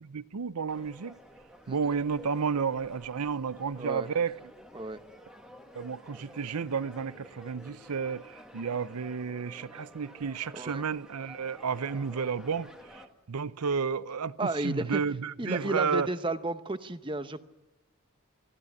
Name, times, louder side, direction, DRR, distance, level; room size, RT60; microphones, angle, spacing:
voice 1, 0.0-1.1 1.7-4.3 5.8-12.7 12.9-13.0 13.3-16.1, right 6 dB, 90° right, 0.6 m, -31 dB
sound 1, 0.7-13.1, equal, 5° right, 1.5 m, -51 dB
voice 2, 3.8-4.1 4.7-5.0 10.5-10.8 14.4-15.0 15.4-17.5, right 2 dB, 20° right, 0.8 m, -33 dB
22.5 x 14.5 x 9.7 m
head